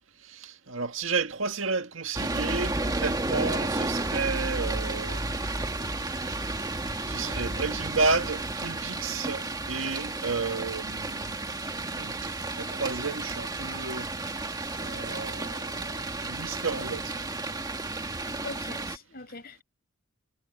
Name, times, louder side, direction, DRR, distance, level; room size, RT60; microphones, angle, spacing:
voice 1, 0.3-5.4 6.5-6.6 7.1-11.4 11.9-14.1 14.8-17.2, right 4 dB, 70° right, 1.9 m, -32 dB
sound 1, 2.1-19.0, right 2 dB, 20° right, 1.7 m, -32 dB
voice 2, 18.4-19.6, left 3 dB, 50° left, 5.9 m, -42 dB
head